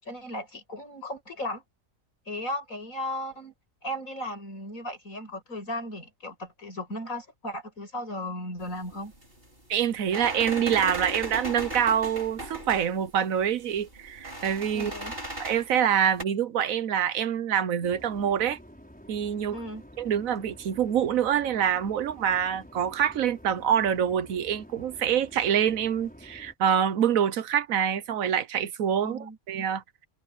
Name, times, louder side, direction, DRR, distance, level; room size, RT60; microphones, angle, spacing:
voice 1, 0.0-1.6 2.3-3.5 3.8-9.1 14.7-15.2 19.5-19.8 29.0-29.4, left 1 dB, 80° left, 7.0 m, -36 dB
sound 1, 8.6-16.2, right 1 dB, 45° right, 5.7 m, -38 dB
voice 2, 9.7-14.9 15.4-18.6 19.1-19.6 20.0-29.8, right 9 dB, 85° right, 1.3 m, -26 dB
sound 2, 17.8-26.5, equal, 5° left, 5.1 m, -50 dB
omnidirectional pair, 1.4 m